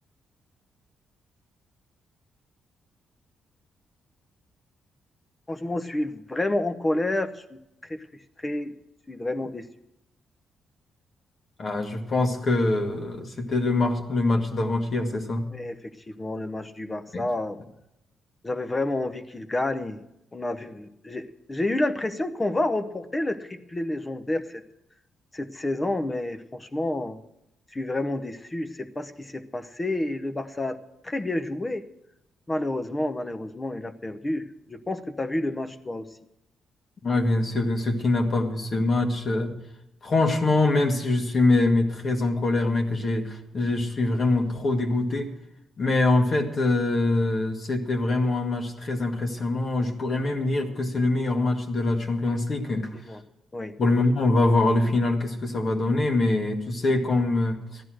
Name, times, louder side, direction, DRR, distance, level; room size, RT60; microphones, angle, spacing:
voice 1, 5.5-8.0 8.4-8.7 9.1-9.7 15.5-17.6 18.4-20.0 20.3-24.6 25.3-27.2 27.7-30.8 31.0-31.8 32.5-36.1 53.1-53.2 53.5-53.7, left 1 dB, 20° left, 9 dB, 0.9 m, -29 dB
voice 2, 11.6-15.4 17.1-17.2 37.0-39.6 40.0-45.3 45.8-52.9 53.8-57.8, left 2 dB, 45° left, 3 dB, 2.0 m, -24 dB
14.0 x 11.0 x 6.3 m, 0.84 s
cardioid pair, 90°, 0 cm